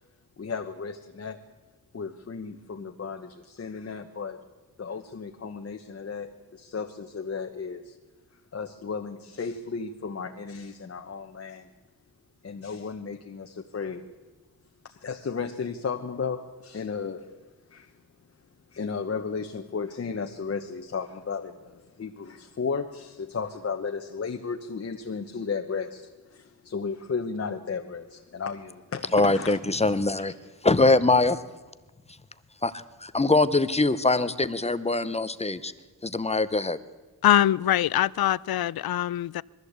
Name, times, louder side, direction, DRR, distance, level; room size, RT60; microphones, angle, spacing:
voice 1, 0.4-1.4 1.9-4.4 4.8-8.0 8.5-11.7 12.4-14.1 14.8-17.2 17.7-17.9 18.7-29.6, left 5 dB, 40° left, 1.1 m, -34 dB
voice 2, 29.1-30.3 30.6-31.3 32.6-32.7 33.1-35.7 36.0-36.8, left 2 dB, 15° left, 0.8 m, -22 dB
voice 3, 37.2-39.4, left 12 dB, 70° left, 0.5 m, -23 dB
21.5 x 14.5 x 8.1 m
wide cardioid pair, 140°, 38 cm